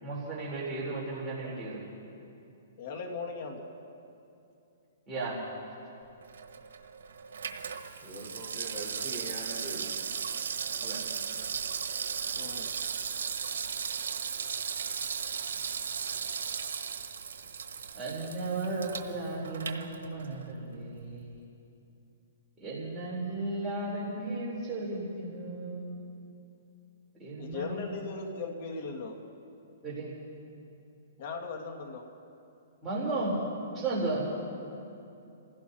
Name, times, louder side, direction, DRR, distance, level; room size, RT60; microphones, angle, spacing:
voice 1, 0.0-1.8 5.1-5.4 10.8-11.0 17.9-21.3 22.6-26.1 27.2-27.8 29.8-30.1 32.8-33.4 33.7-34.4, right 2 dB, 15° right, -8 dB, 3.4 m, -34 dB
voice 2, 2.8-3.7 12.4-12.7 27.4-29.2 31.2-32.0, left 4 dB, 50° left, 1 dB, 1.9 m, -38 dB
Water tap faucet / Sink (filling or washing), 6.2-20.5 20.8-20.9, right 6 dB, 80° right, 1.2 m, -36 dB
voice 3, 8.0-9.8, right 2 dB, 15° left, -9 dB, 4.4 m, -42 dB
29.0 x 16.0 x 2.8 m, 2.7 s
hypercardioid pair, 145°, 0 cm